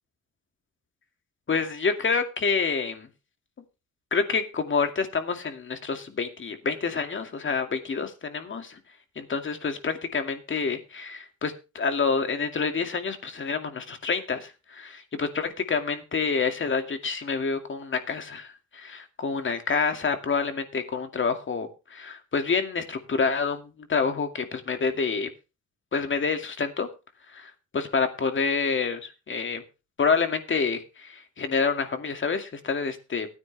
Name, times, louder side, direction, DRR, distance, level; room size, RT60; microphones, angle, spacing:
voice 1, 1.5-3.1 4.1-8.8 9.2-25.3 25.9-26.9 27.3-29.6 30.0-33.3, left 5 dB, 40° left, 7 dB, 2.3 m, -28 dB
16.0 x 9.7 x 3.4 m, 0.30 s
cardioid pair, 90°, 30 cm